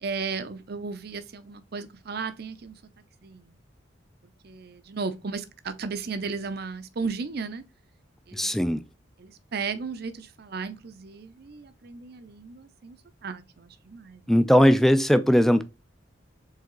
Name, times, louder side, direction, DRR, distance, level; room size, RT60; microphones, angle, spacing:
voice 1, 0.0-2.8 3.2-3.6 4.4-7.6 8.3-8.6 9.2-14.2, right 4 dB, 55° right, 0.6 m, -35 dB
voice 2, 8.3-8.8 14.3-15.6, equal, ahead, 0.3 m, -19 dB
4.7 x 3.5 x 3.0 m
head